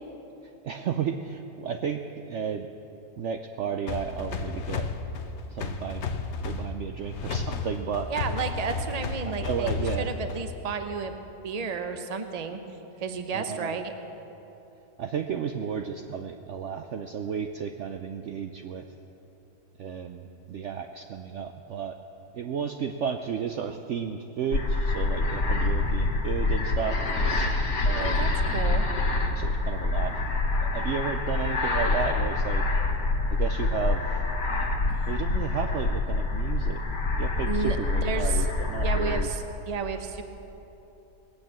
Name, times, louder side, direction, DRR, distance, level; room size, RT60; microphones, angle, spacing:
voice 1, 0.6-2.7 3.2-4.9 5.5-6.1 6.4-8.1 9.4-10.1 13.3-13.8 15.0-18.8 19.8-22.0 22.3-27.0 27.8-28.4 29.3-30.2 30.6-32.6 33.3-34.2 35.1-36.8 37.2-39.3, right 7 dB, 65° right, 6 dB, 0.8 m, -33 dB
sound 1, 3.9-10.6, left 4 dB, 55° left, 1.0 m, -33 dB
voice 2, 8.1-9.7 10.0-11.2 11.4-12.6 13.0-13.9 28.0-28.9 37.5-38.5 38.8-40.2, right 5 dB, 35° right, 7 dB, 0.8 m, -32 dB
sound 2, 24.5-39.3, left 2 dB, 70° left, 1.7 m, -26 dB
19.0 x 8.9 x 7.4 m, 3.0 s
omnidirectional pair, 1.6 m